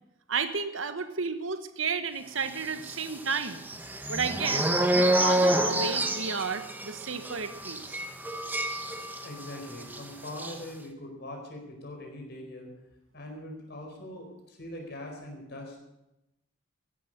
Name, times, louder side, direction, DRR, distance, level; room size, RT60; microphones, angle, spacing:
voice 1, 0.3-3.7 4.1-8.0, right 5 dB, 75° right, 10 dB, 1.3 m, -32 dB
sound 1, 2.8-9.5 9.8-10.0 10.3-10.5, right 1 dB, 10° right, 1.1 m, -28 dB
voice 2, 9.2-12.7 13.1-15.8, left 1 dB, 55° left, 2 dB, 4.5 m, -42 dB
15.0 x 11.5 x 6.5 m, 0.92 s
head